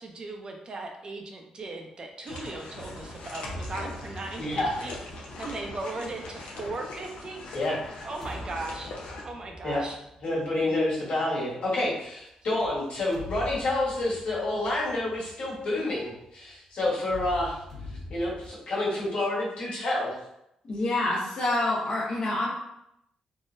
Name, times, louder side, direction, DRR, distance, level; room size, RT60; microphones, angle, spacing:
voice 1, 0.0-7.4 8.0-8.9 9.2-10.0, right 2 dB, 40° right, 2 dB, 0.5 m, -38 dB
sound 1, 2.3-9.2, left 2 dB, 85° left, 0.6 m, -41 dB
sound 2, 3.1-6.9 7.6-11.2 12.5-16.5 17.0-18.5, left 2 dB, 5° left, 0.9 m, -44 dB
voice 2, 4.4-4.7 7.5-7.8 9.6-9.8 10.2-17.6 18.1-20.1, left 2 dB, 70° left, -6 dB, 1.3 m, -28 dB
voice 3, 20.6-22.5, left 2 dB, 45° left, -5 dB, 0.6 m, -27 dB
3.6 x 2.1 x 2.6 m, 0.81 s
cardioid pair, 95°, 2 cm